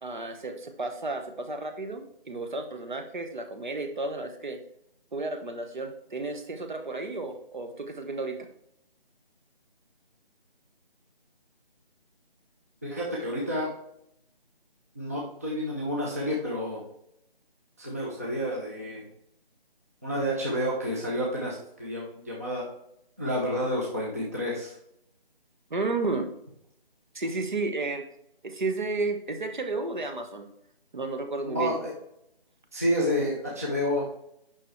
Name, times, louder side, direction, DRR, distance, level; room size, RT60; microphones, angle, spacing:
voice 1, 0.0-4.6 5.1-8.5 25.7-26.3 27.1-28.0 28.4-30.5 30.9-31.8, right 3 dB, 55° right, 6 dB, 1.4 m, -32 dB
voice 2, 12.8-13.7 15.0-16.8 17.8-19.0 20.0-22.7 23.2-24.7 31.5-31.9 32.7-34.1, equal, 15° right, -4 dB, 0.8 m, -29 dB
9.0 x 5.9 x 3.2 m, 0.77 s
figure-of-eight pair, 170°, 29 cm